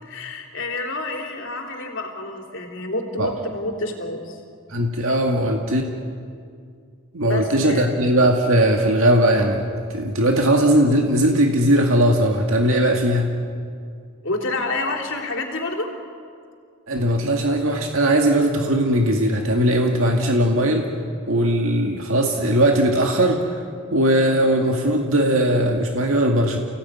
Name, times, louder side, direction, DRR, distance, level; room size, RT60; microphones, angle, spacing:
voice 1, 0.0-4.4 7.2-8.0 14.2-15.9, left 2 dB, 60° left, 2 dB, 3.5 m, -28 dB
voice 2, 4.7-5.8 7.1-13.3 16.9-20.9 21.3-23.6 23.9-26.6, right 1 dB, 70° right, 2 dB, 2.1 m, -19 dB
30.0 x 17.0 x 9.6 m, 2.3 s
head